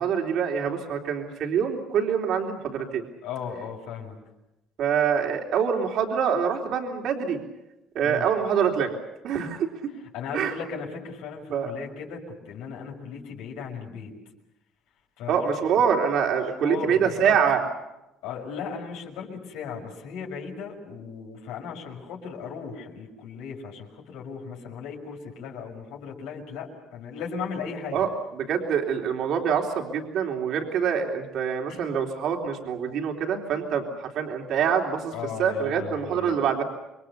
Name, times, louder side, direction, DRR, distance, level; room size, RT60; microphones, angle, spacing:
voice 1, 0.0-3.0 4.8-7.4 8.0-9.0 9.2-9.7 10.3-10.6 11.5-11.7 15.3-17.6 27.9-35.1 35.4-36.6, right 7 dB, 60° right, 2 dB, 3.6 m, -25 dB
voice 2, 3.2-4.1 8.0-8.3 10.1-14.1 15.2-15.5 16.6-17.3 18.2-28.0 31.7-31.9 35.1-36.4, left 6 dB, 90° left, 0 dB, 6.1 m, -36 dB
28.0 x 23.0 x 6.9 m, 0.94 s
cardioid pair, 125°, 0 cm